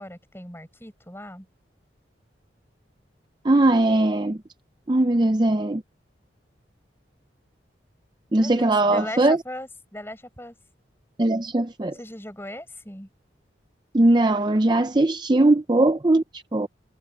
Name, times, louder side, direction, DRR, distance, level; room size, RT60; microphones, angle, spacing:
voice 1, 0.0-1.5 8.3-10.5 11.9-13.1, left 1 dB, 10° left, 6.8 m, -38 dB
voice 2, 3.4-4.4 4.9-5.8 8.3-9.4 11.2-11.9 13.9-16.7, right 2 dB, 25° right, 0.5 m, -20 dB
head